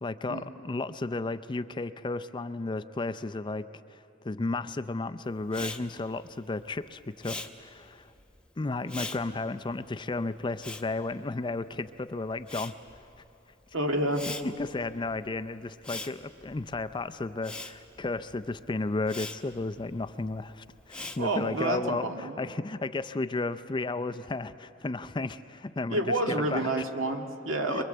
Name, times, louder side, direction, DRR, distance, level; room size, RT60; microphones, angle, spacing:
voice 1, 0.0-8.1 8.6-12.8 14.4-26.7 27.7-27.8, left 3 dB, 25° left, 12 dB, 0.4 m, -33 dB
Respiratory sounds, 5.5-11.9 12.2-21.7, left 2 dB, 5° left, 0.9 m, -43 dB
voice 2, 13.7-14.2 21.2-22.4 25.9-27.8, right 1 dB, 80° right, 3 dB, 1.9 m, -29 dB
23.5 x 23.0 x 7.8 m, 2.8 s
head